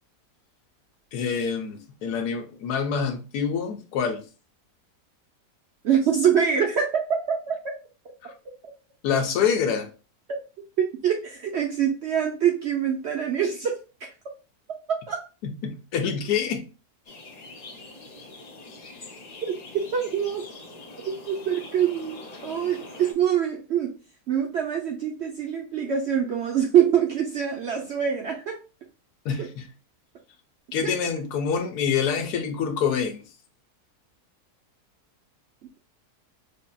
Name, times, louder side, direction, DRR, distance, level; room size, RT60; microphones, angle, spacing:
voice 1, 1.1-4.2 8.2-8.3 9.0-9.9 15.4-16.6 29.2-29.7 30.7-33.2, left 7 dB, 80° left, 1.2 m, -26 dB
voice 2, 5.8-7.7 10.8-13.8 14.9-15.2 19.4-19.5 19.9-20.4 21.0-23.9 24.3-28.6 29.4-29.5 30.8-30.9, right 8 dB, 65° right, 0.6 m, -24 dB
sound 1, 17.1-23.1, left 2 dB, 65° left, 0.4 m, -43 dB
4.8 x 2.7 x 2.2 m
omnidirectional pair, 1.7 m